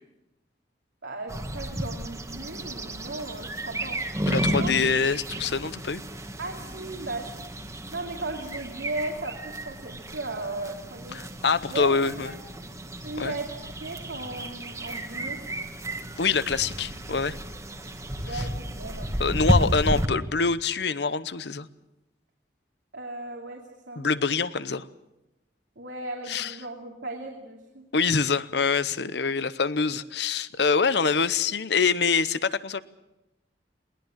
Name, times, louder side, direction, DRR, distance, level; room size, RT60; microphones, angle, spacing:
voice 1, 1.0-4.0 4.5-4.7 6.4-7.3 7.9-11.2 11.7-12.3 13.0-15.4 18.1-19.2 22.9-24.1 25.8-27.9, right 2 dB, 85° right, 0 dB, 2.8 m, -36 dB
sound 1, 1.3-20.1, equal, 15° right, 1.5 m, -32 dB
voice 2, 4.3-6.0 11.1-12.3 13.2-13.3 16.2-17.4 18.3-18.5 19.2-21.7 24.0-24.9 26.3-26.5 27.9-32.8, left 5 dB, 65° left, 16 dB, 0.8 m, -25 dB
21.5 x 19.5 x 7.4 m, 0.96 s
head